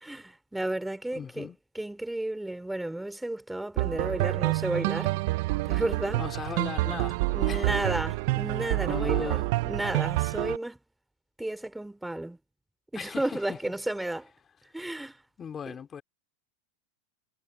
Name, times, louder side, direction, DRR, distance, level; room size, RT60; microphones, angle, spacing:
voice 1, 0.0-1.5 1.8-5.1 5.6-6.2 6.9-7.0 7.3-10.8 11.4-12.4 12.9-14.3 14.7-15.2 15.7-15.8, right 1 dB, 5° right, 3.4 m, -33 dB
voice 2, 1.1-1.6 6.2-7.2 7.5-8.0 8.9-9.5 12.9-13.6 15.4-16.0, left 7 dB, 25° left, 2.7 m, -38 dB
sound 1, 3.8-10.6, right 21 dB, 65° right, 0.6 m, -28 dB
supercardioid pair, 120°, 0 cm